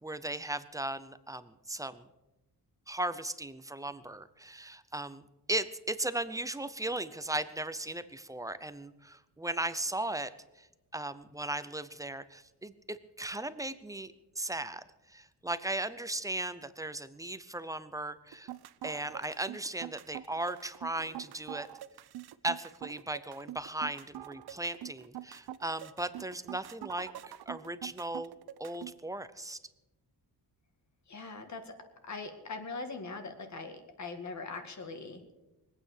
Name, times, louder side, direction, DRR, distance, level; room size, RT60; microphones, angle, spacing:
voice 1, 0.0-2.0 2.9-5.2 5.5-10.3 10.9-14.8 15.1-18.5 18.8-21.7 22.4-28.3 28.6-29.6, right 2 dB, 10° right, 13 dB, 0.6 m, -37 dB
sound 1, 18.3-28.9, right 13 dB, 75° right, 0.7 m, -44 dB
voice 2, 31.1-31.7 32.0-35.2, left 3 dB, 45° left, 6 dB, 1.9 m, -41 dB
22.5 x 8.9 x 6.5 m, 1.0 s
wide cardioid pair, 155°, 38 cm